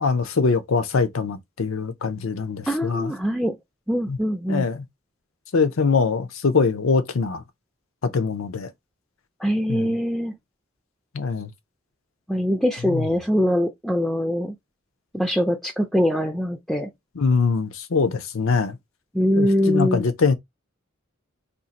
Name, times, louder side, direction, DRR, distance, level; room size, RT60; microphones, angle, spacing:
voice 1, 0.0-3.1 4.1-4.2 4.5-4.8 5.5-7.4 8.1-8.7 9.7-9.9 11.1-11.5 12.9-13.0 17.2-18.8 19.4-20.3, left 4 dB, 75° left, 0.6 m, -23 dB
voice 2, 2.7-3.6 3.9-4.7 9.4-10.3 12.3-14.5 15.1-16.9 19.1-20.1, equal, ahead, 0.4 m, -23 dB
2.6 x 2.5 x 4.0 m
head